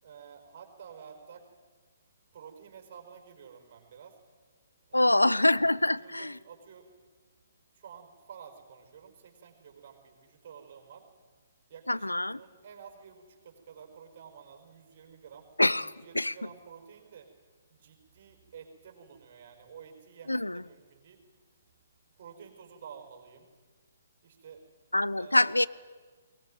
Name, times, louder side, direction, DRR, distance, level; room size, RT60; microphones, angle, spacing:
voice 1, 0.0-1.5 2.3-4.2 4.9-5.3 5.8-6.9 7.7-11.1 11.7-15.5 15.8-17.3 17.7-21.2 22.2-23.5 24.2-24.6 25.1-25.5, right 7 dB, 40° right, 5 dB, 4.7 m, -51 dB
voice 2, 4.9-6.4 11.9-12.4 15.6-16.3 20.3-20.6 24.9-25.7, left 1 dB, 85° left, 19 dB, 0.6 m, -25 dB
22.5 x 19.5 x 9.1 m, 1.5 s
figure-of-eight pair, 130°, 0 cm